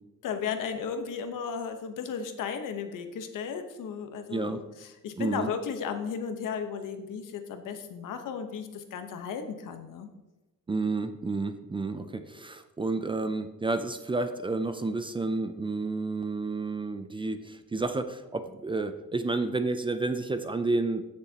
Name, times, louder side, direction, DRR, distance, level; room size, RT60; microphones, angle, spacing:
voice 1, 0.2-10.1, left 6 dB, 85° left, 7 dB, 1.1 m, -35 dB
voice 2, 5.2-5.5 10.7-21.0, right 3 dB, 15° right, 9 dB, 0.4 m, -30 dB
15.5 x 6.8 x 2.9 m, 1.1 s
cardioid pair, 170°, 31 cm